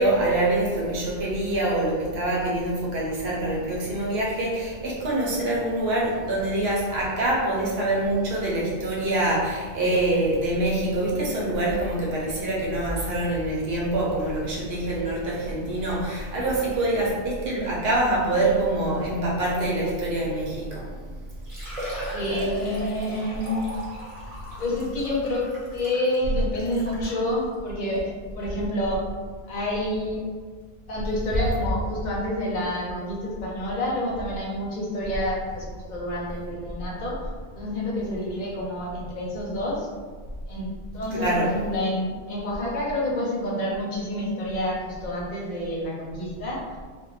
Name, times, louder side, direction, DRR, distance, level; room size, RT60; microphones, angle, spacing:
voice 1, 0.0-20.9 41.2-41.5, right 1 dB, 75° right, -4 dB, 0.9 m, -25 dB
Liquid, 21.3-27.2 27.9-28.0 28.4-28.5 30.2-30.3 30.4-30.5, right 1 dB, 35° right, 0.7 m, -37 dB
voice 2, 22.1-23.7 24.6-29.0 29.5-30.3 30.9-37.2 37.5-39.9 40.5-40.7 40.9-46.6, left 1 dB, 50° left, -4 dB, 0.7 m, -28 dB
2.5 x 2.1 x 3.1 m, 1.5 s
omnidirectional pair, 1.0 m